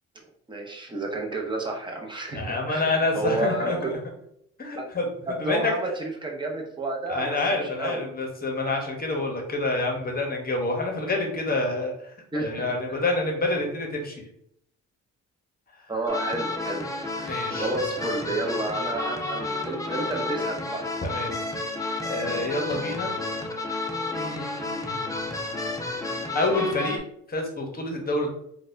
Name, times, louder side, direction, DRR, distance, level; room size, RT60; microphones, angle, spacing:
voice 1, 0.5-3.9 5.3-8.0 12.3-12.7 15.9-16.9 17.2-20.8, right 2 dB, 15° right, 0 dB, 0.8 m, -31 dB
voice 2, 2.3-4.0 4.6-5.1 5.4-5.7 7.1-11.9 12.4-14.2 17.2-17.7 21.0-21.4 22.0-23.1 24.1-24.9 26.3-27.0 27.3-28.3, left 2 dB, 30° left, 1 dB, 0.9 m, -27 dB
sound 1, 16.1-27.0, left 2 dB, 10° left, 0.4 m, -31 dB
3.9 x 2.3 x 2.6 m, 0.73 s
cardioid pair, 90°, 30 cm